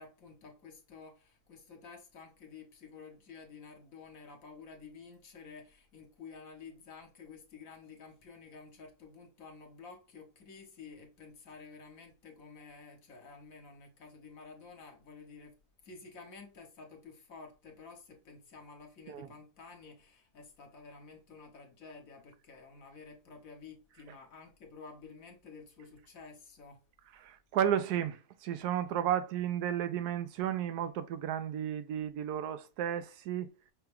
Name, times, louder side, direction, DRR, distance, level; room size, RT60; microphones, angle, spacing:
voice 1, 0.0-26.8, left 4 dB, 60° left, 1.4 m, -51 dB
voice 2, 27.2-33.5, right 10 dB, 80° right, 1.1 m, -33 dB
5.6 x 2.3 x 3.4 m
omnidirectional pair, 1.7 m